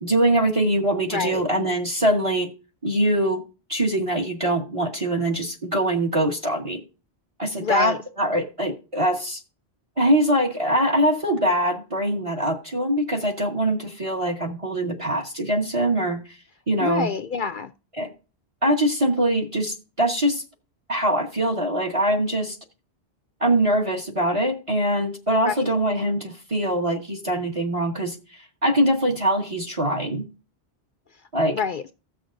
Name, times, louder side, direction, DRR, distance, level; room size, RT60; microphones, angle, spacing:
voice 1, 0.0-2.5 2.8-3.4 3.7-6.8 7.4-9.4 10.0-16.2 16.7-17.1 18.0-18.1 18.6-20.4 20.9-22.6 23.4-28.2 28.6-30.3 31.3-31.6, right 1 dB, 30° right, 1.3 m, -23 dB
voice 2, 1.1-1.4 7.6-8.0 16.8-17.7 25.4-25.8 31.5-32.0, left 6 dB, 55° left, 0.6 m, -26 dB
16.0 x 6.5 x 2.5 m
omnidirectional pair, 1.1 m